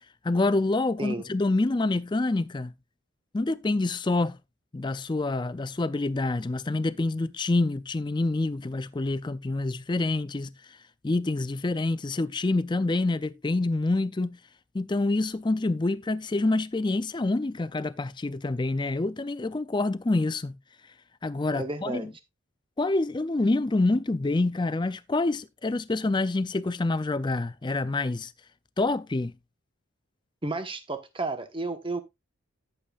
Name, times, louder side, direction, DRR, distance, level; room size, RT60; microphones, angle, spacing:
voice 1, 0.2-2.7 3.3-4.4 4.7-10.5 11.0-14.4 14.7-20.5 21.2-22.1 22.8-28.3 28.8-29.3, left 2 dB, 20° left, 0.4 m, -27 dB
voice 2, 1.0-1.3 21.5-22.1 30.4-32.0, right 2 dB, 25° right, 1.2 m, -32 dB
14.0 x 7.1 x 2.4 m
head